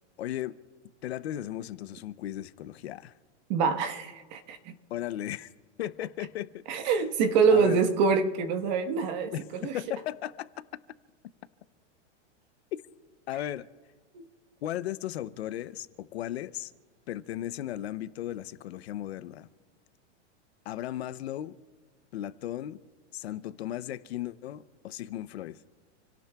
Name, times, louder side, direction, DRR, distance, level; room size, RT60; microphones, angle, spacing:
voice 1, 0.2-0.6 1.0-3.1 4.9-5.5 5.8-7.0 7.5-7.9 9.3-10.5 13.3-13.7 14.6-16.7 17.1-19.5 20.7-21.6 22.1-22.8 23.1-25.6, left 12 dB, 60° left, 0.7 m, -36 dB
voice 2, 3.5-4.7 6.7-9.3 9.6-9.8 14.1-14.2, right 5 dB, 40° right, 1.3 m, -25 dB
28.5 x 17.5 x 2.3 m
supercardioid pair, 170°, 36 cm